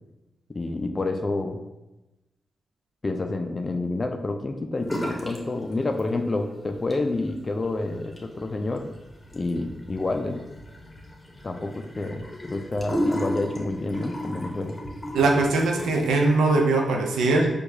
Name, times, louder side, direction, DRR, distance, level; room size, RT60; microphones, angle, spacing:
voice 1, 0.5-1.6 3.0-8.9 9.3-10.4 11.4-14.8, left 2 dB, 40° left, 5 dB, 0.3 m, -29 dB
sound 1, 4.8-5.4 5.7-6.4 6.7-16.2, equal, 25° left, 0.9 m, -34 dB
voice 2, 15.1-17.5, right 3 dB, 90° right, 1 dB, 0.5 m, -21 dB
4.6 x 2.3 x 2.7 m, 1.0 s
supercardioid pair, 45°, 0 cm